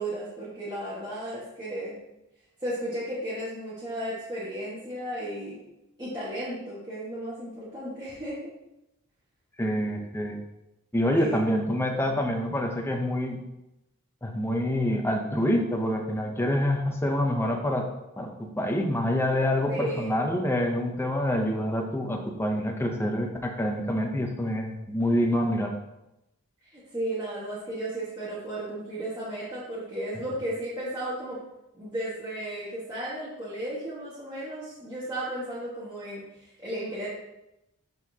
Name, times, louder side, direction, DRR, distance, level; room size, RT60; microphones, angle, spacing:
voice 1, 0.0-2.0 2.6-5.6 6.0-8.5 11.1-11.4 19.7-20.2 26.7-31.4 31.7-37.1, right 1 dB, 15° right, -11 dB, 1.5 m, -34 dB
voice 2, 9.6-10.4 10.9-13.4 14.2-17.9 18.2-25.7, left 1 dB, 10° left, 2 dB, 0.6 m, -26 dB
10.5 x 4.1 x 2.8 m, 0.92 s
head